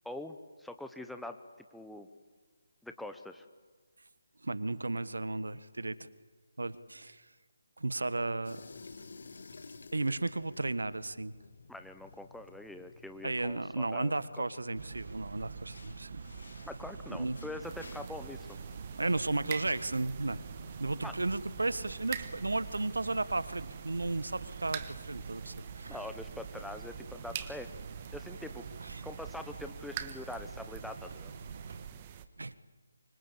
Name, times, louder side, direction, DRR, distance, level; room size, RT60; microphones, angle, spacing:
voice 1, 0.0-1.4 1.7-2.1 2.8-3.4 11.7-14.1 14.4-14.5 16.7-18.6 21.0-21.1 25.9-27.7 28.1-28.7 29.0-31.3, left 1 dB, ahead, 7 dB, 1.1 m, -44 dB
voice 2, 4.4-6.1 6.6-7.2 7.8-8.6 9.9-11.3 13.2-16.2 17.1-17.4 19.0-20.4 20.8-26.0 28.8-29.0 32.4-32.5, right 2 dB, 75° right, 16 dB, 1.4 m, -34 dB
sound 1, 8.4-21.4, left 4 dB, 60° left, 2.2 m, -54 dB
sound 2, 14.7-31.9, right 5 dB, 45° right, 2.0 m, -46 dB
sound 3, 17.6-32.3, right 10 dB, 25° right, 1.5 m, -46 dB
25.5 x 25.0 x 8.5 m, 1.5 s
figure-of-eight pair, 150°, 0 cm